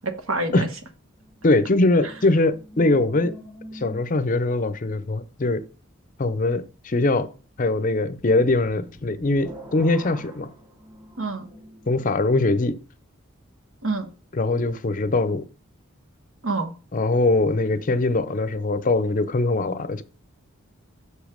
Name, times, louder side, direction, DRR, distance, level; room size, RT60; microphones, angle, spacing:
voice 1, 0.0-0.7 11.2-11.5 13.8-14.1 16.4-16.7, right 3 dB, 75° right, 1.2 m, -26 dB
sound 1, 1.1-4.5 8.1-12.1, equal, 25° right, 2.1 m, -44 dB
voice 2, 1.4-3.3 3.7-5.6 6.2-7.3 7.6-10.5 11.9-12.8 14.4-15.4 16.9-20.0, left 2 dB, 40° left, 0.5 m, -22 dB
6.6 x 5.1 x 5.0 m
head